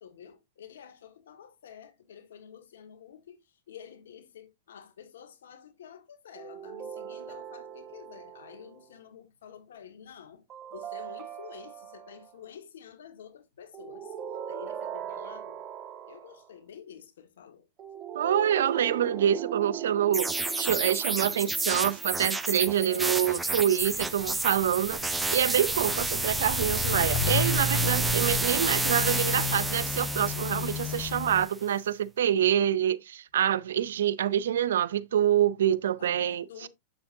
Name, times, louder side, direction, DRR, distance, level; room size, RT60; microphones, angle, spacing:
voice 1, 0.0-10.4 10.7-14.1 14.5-15.6 16.1-17.7 22.8-23.2 32.4-32.5 36.0-36.7, left 8 dB, 90° left, 1.9 m, -49 dB
sound 1, 6.4-8.8 10.5-12.3 13.7-16.5 17.8-22.3, right 10 dB, 30° right, 1.8 m, -40 dB
voice 2, 18.1-36.7, right 10 dB, 85° right, 0.6 m, -26 dB
sound 2, 20.1-31.5, right 3 dB, 10° right, 0.7 m, -30 dB
Walk footsteps, 23.8-31.5, left 5 dB, 40° left, 0.8 m, -33 dB
7.5 x 7.0 x 2.8 m
hypercardioid pair, 125°, 0 cm